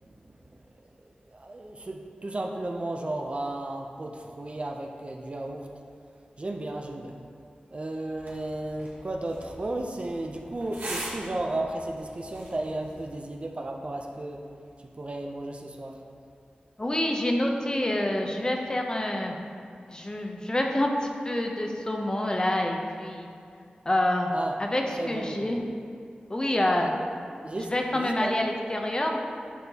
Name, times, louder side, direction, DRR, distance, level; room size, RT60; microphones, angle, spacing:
voice 1, 1.3-5.7 6.4-7.2 7.7-14.4 15.0-16.0 24.3-24.5 25.0-25.6 26.8-26.9 27.4-28.3, right 2 dB, 40° right, 2 dB, 0.5 m, -34 dB
sound 1, 8.1-13.1, right 1 dB, 85° right, 1.5 m, -42 dB
voice 2, 16.8-19.3 19.9-23.3 23.9-24.3 24.6-25.6 26.3-26.9 27.6-29.2, left 1 dB, 25° left, 1 dB, 0.6 m, -27 dB
10.0 x 4.3 x 2.8 m, 2.3 s
wide cardioid pair, 85°, 3 cm